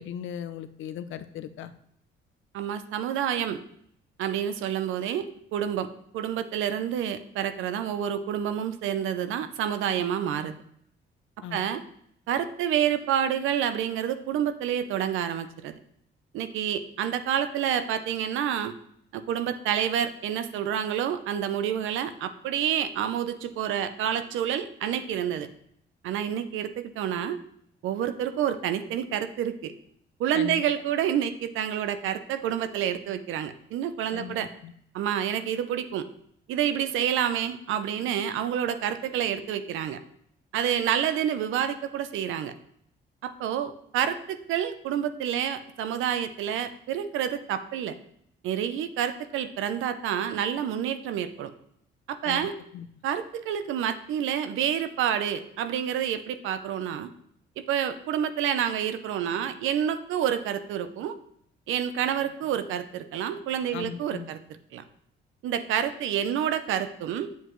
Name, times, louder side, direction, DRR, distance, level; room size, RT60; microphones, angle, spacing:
voice 1, 0.0-1.7 11.4-11.7 30.3-30.7 34.1-34.7 52.2-52.5 52.7-52.9 63.7-64.3, left 9 dB, 80° left, 12 dB, 0.6 m, -38 dB
voice 2, 2.5-3.6 4.2-5.3 5.5-5.9 6.1-10.5 11.5-11.8 12.3-15.7 16.3-18.7 19.1-25.5 26.0-27.4 27.8-29.7 30.2-34.5 34.9-36.1 36.5-40.0 40.5-42.5 43.2-47.9 48.4-51.5 52.1-52.5 53.0-57.1 57.6-61.2 61.7-64.4 64.7-64.8 65.4-67.3, right 9 dB, 85° right, 11 dB, 0.6 m, -28 dB
7.9 x 7.3 x 3.1 m, 0.70 s
cardioid pair, 90°, 20 cm